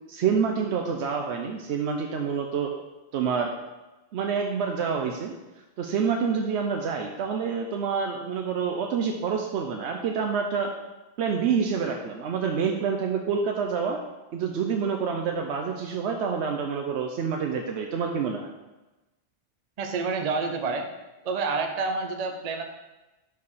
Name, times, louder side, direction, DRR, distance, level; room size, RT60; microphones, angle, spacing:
voice 1, 0.1-2.7 3.1-3.6 4.1-5.3 5.8-10.7 11.2-14.0 14.3-18.5, right 6 dB, 90° right, 3 dB, 0.9 m, -27 dB
voice 2, 19.8-20.9 21.2-22.6, right 4 dB, 45° right, 4 dB, 0.6 m, -28 dB
4.8 x 4.6 x 5.4 m, 1.1 s
omnidirectional pair, 1.1 m